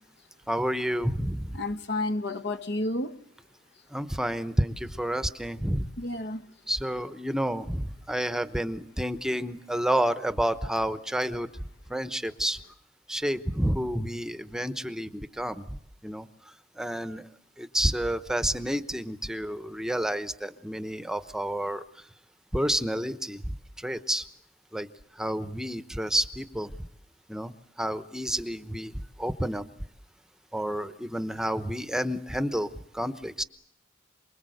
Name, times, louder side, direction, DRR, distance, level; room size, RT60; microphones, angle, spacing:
voice 1, 0.5-1.5 3.9-5.9 6.7-11.5 11.9-12.6 13.1-15.6 16.0-16.2 16.8-17.2 17.6-21.8 22.5-23.4 23.8-24.2 24.7-24.9 25.2-26.7 27.3-27.5 27.8-28.9 29.2-29.6 30.5-32.7 32.9-33.4, equal, 5° right, 1.0 m, -29 dB
voice 2, 1.5-3.2 6.0-6.4, left 2 dB, 60° left, 1.4 m, -30 dB
28.5 x 21.5 x 7.9 m
head